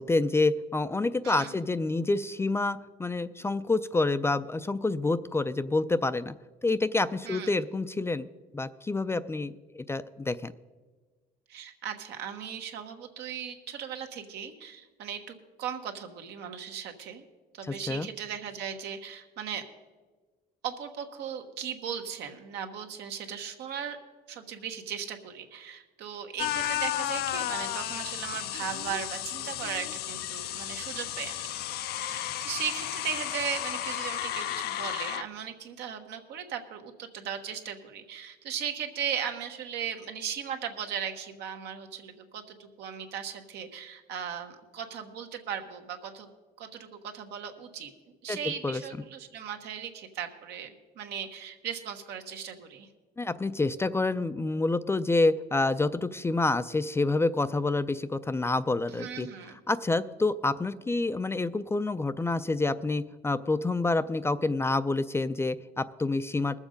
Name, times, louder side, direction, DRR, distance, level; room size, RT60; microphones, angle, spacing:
voice 1, 0.0-6.3 6.6-8.3 8.5-10.5 17.7-18.1 48.3-48.4 48.6-48.8 53.2-59.3 59.7-66.6, left 3 dB, 15° left, 13 dB, 0.3 m, -28 dB
voice 2, 1.2-1.5 7.2-7.6 11.5-17.2 17.5-19.6 20.6-24.0 24.3-31.5 31.9-46.3 46.6-47.9 48.2-52.9 58.9-59.6, right 8 dB, 80° right, 5 dB, 1.3 m, -37 dB
sound 1, 26.4-35.2, left 13 dB, 70° left, 0.5 m, -33 dB
20.0 x 7.2 x 5.1 m, 1.3 s
cardioid pair, 110°, 17 cm